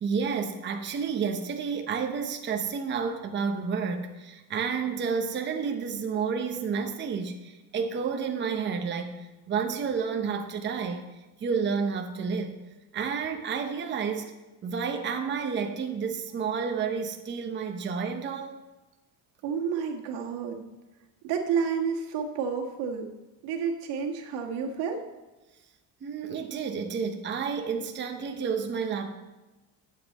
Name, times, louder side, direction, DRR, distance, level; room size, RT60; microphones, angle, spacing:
voice 1, 0.0-11.0 11.4-12.6 12.9-14.3 14.6-18.6 26.0-29.1, right 6 dB, 25° right, 4 dB, 0.8 m, -30 dB
voice 2, 19.4-20.7 21.2-23.1 23.4-25.0, right 6 dB, 85° right, 2 dB, 1.6 m, -30 dB
11.5 x 7.5 x 4.2 m, 1.1 s
cardioid pair, 140°, 41 cm